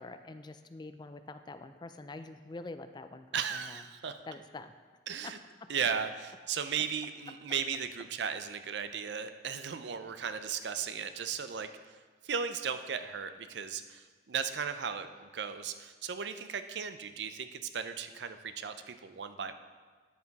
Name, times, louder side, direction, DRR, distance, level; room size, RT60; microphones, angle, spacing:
voice 1, 0.0-3.8 4.3-4.7, left 2 dB, 25° left, 9 dB, 0.4 m, -45 dB
voice 2, 3.3-4.2 5.1-5.4 5.7-11.7 12.2-19.5, right 7 dB, 70° right, 10 dB, 0.5 m, -36 dB
9.8 x 7.0 x 4.0 m, 1.5 s
head